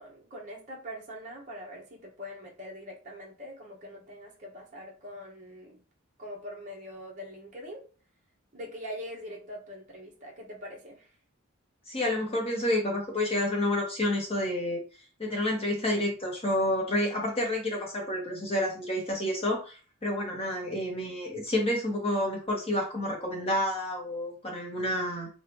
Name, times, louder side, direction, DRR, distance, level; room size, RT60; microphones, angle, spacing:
voice 1, 0.0-5.8 6.2-7.9 8.5-11.1, equal, 35° right, -2 dB, 0.9 m, -43 dB
voice 2, 11.9-14.8 15.2-25.3, left 1 dB, 25° left, -1 dB, 1.0 m, -29 dB
3.2 x 2.4 x 2.9 m, 0.35 s
head